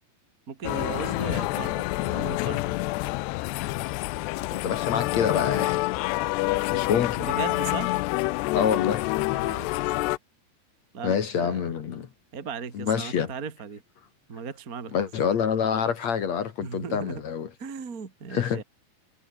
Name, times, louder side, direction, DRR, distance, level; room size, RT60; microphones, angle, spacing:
voice 1, 0.5-2.7 7.3-8.0 9.3-9.7 10.9-11.7 12.3-13.8 14.3-15.1 16.6-17.2 17.6-18.6, right 6 dB, 30° right, 1.7 m, -37 dB
sound 1, 0.6-10.2, left 20 dB, 85° left, 2.6 m, -27 dB
voice 2, 4.5-5.9 6.7-7.3 8.5-9.1 11.0-12.1 12.7-13.3 14.9-17.5 18.3-18.6, left 7 dB, 55° left, 2.2 m, -26 dB
omnidirectional pair, 5.2 m